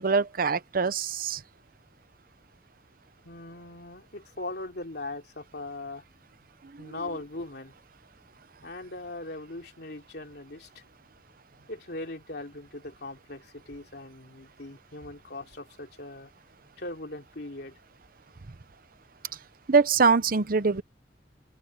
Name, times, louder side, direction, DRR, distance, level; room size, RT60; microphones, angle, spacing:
voice 1, 0.0-1.4 6.8-6.9 19.7-20.8, right 4 dB, 55° right, 0.8 m, -23 dB
voice 2, 3.2-6.0 6.8-7.7 8.6-10.8 11.7-16.3 16.8-17.8, left 2 dB, 65° left, 3.2 m, -40 dB
open air
head